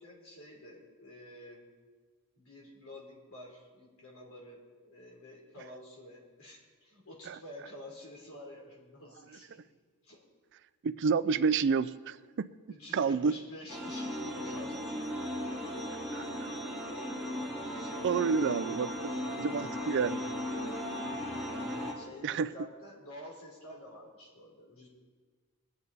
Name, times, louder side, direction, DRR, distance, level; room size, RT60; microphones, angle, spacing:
voice 1, 0.0-1.7 2.4-9.7 10.0-10.3 11.2-11.3 12.7-15.3 17.6-18.8 21.6-24.9, left 1 dB, 70° left, -2 dB, 3.5 m, -50 dB
voice 2, 10.8-12.5 12.9-13.3 16.1-16.2 18.0-20.2 22.2-22.5, right 5 dB, 55° right, 15 dB, 0.4 m, -29 dB
sound 1, 13.7-21.9, equal, ahead, 2.3 m, -37 dB
21.5 x 8.6 x 4.1 m, 1.5 s
head